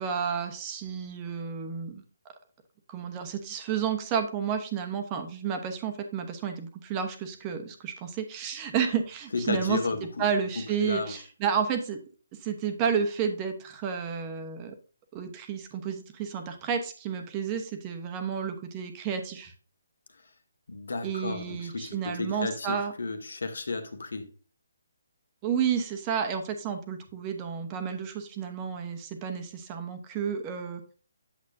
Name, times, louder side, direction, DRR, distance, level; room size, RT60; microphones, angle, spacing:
voice 1, 0.0-2.0 2.9-9.8 10.2-12.0 12.4-14.7 15.1-19.5 21.0-22.9 25.4-30.8, right 7 dB, 20° right, 1.0 m, -31 dB
voice 2, 9.3-10.1 10.8-11.2 20.7-24.3, left 3 dB, 80° left, 1.7 m, -33 dB
8.6 x 7.1 x 2.7 m
hypercardioid pair, 165°, 0 cm